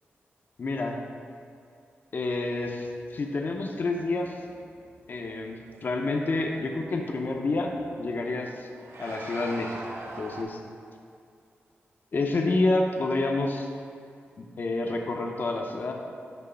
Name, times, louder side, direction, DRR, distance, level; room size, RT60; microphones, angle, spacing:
voice 1, 0.6-1.0 2.1-2.9 3.1-4.4 5.1-7.7 8.0-8.7 9.0-9.8 10.2-10.6 12.1-13.7 14.4-15.9, left 2 dB, 50° left, 2 dB, 0.5 m, -28 dB
sound 1, 2.6-10.4, right 2 dB, 80° right, 0.7 m, -46 dB
6.1 x 3.0 x 5.5 m, 2.4 s
wide cardioid pair, 110°, 4 cm